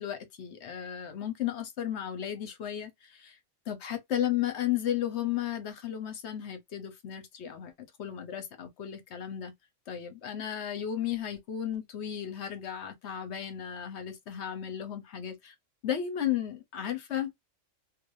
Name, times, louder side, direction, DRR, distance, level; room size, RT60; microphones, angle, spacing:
voice 1, 0.0-3.4 3.7-7.7 8.0-9.5 9.9-15.5 15.8-17.3, left 10 dB, 60° left, 1.0 m, -34 dB
3.2 x 2.7 x 2.5 m
omnidirectional pair, 1.4 m